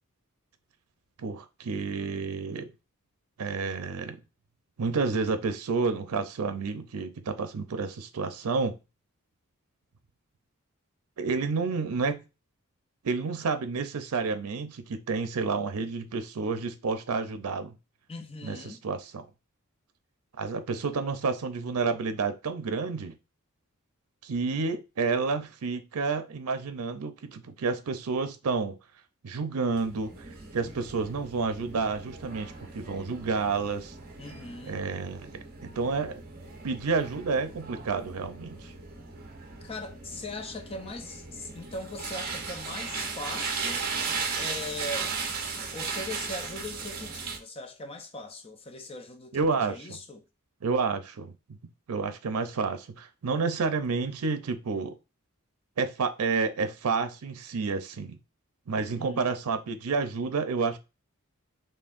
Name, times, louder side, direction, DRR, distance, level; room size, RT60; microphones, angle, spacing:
voice 1, 1.2-2.7 3.4-4.2 4.8-8.8 11.2-12.2 13.0-17.7 18.4-19.3 20.4-23.2 24.2-28.8 29.2-30.1 30.5-33.9 34.7-36.2 36.6-38.7 49.3-50.0 50.6-51.3 51.9-55.0 55.8-58.2 58.7-60.8, right 4 dB, 90° right, 0.5 m, -30 dB
voice 2, 18.1-18.8 34.2-34.8 39.6-43.9 44.4-45.2 45.7-50.2 58.8-59.3, left 2 dB, 25° left, 0.4 m, -40 dB
sound 1, 29.7-47.4, right 5 dB, 40° right, 0.7 m, -37 dB
4.4 x 3.1 x 2.4 m
head